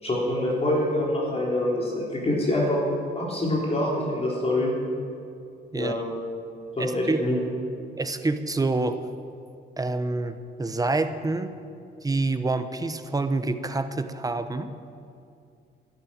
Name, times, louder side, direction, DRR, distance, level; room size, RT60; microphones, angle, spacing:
voice 1, 0.0-2.8 3.1-4.7 5.7-6.1 6.8-7.4, left 1 dB, 30° left, -3 dB, 3.8 m, -25 dB
voice 2, 6.8-7.2 8.0-9.0 9.8-11.5 12.0-14.7, right 3 dB, 20° right, 9 dB, 1.0 m, -27 dB
11.5 x 11.5 x 8.8 m, 2.4 s
cardioid pair, 90°, 20 cm